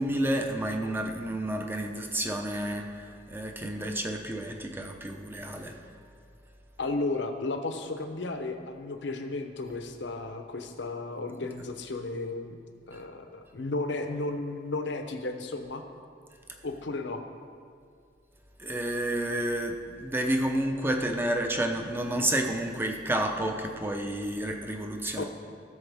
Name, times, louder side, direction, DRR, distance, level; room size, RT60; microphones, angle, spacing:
voice 1, 0.0-5.8 12.9-13.0 18.6-25.2, right 1 dB, 10° right, 3 dB, 0.8 m, -30 dB
voice 2, 6.8-12.6 12.9-15.8 16.6-17.2 25.2-25.3, left 2 dB, 70° left, 6 dB, 0.8 m, -34 dB
15.5 x 6.9 x 3.5 m, 2.2 s
head